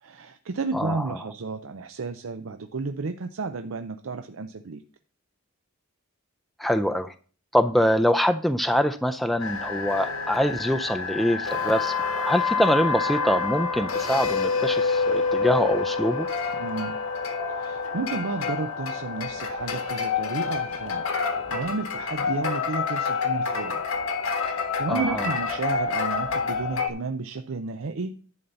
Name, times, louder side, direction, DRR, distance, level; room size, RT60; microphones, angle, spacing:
voice 1, 0.0-4.8 16.5-17.0 17.5-23.8 24.5-28.1, right 4 dB, 70° right, 7 dB, 0.6 m, -32 dB
voice 2, 6.6-7.1 7.5-16.3 24.9-25.3, equal, ahead, 6 dB, 0.4 m, -24 dB
sound 1, 9.4-26.9, left 5 dB, 85° left, 1.5 m, -28 dB
11.0 x 4.1 x 6.9 m, 0.41 s
head